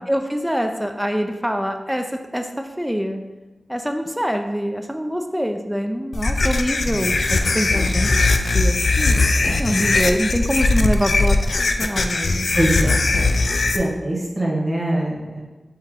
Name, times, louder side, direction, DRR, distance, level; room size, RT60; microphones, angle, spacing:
voice 1, 0.1-2.1 2.3-2.5 2.8-3.2 3.7-8.1 8.5-9.2 9.6-12.5, equal, 5° right, 5 dB, 0.4 m, -24 dB
sound 1, 6.1-13.8, left 3 dB, 75° left, 0.3 m, -19 dB
voice 2, 12.5-13.0 13.7-15.4, right 1 dB, 20° right, -3 dB, 1.2 m, -22 dB
4.6 x 2.9 x 3.6 m, 1.1 s
wide cardioid pair, 70°, 0 cm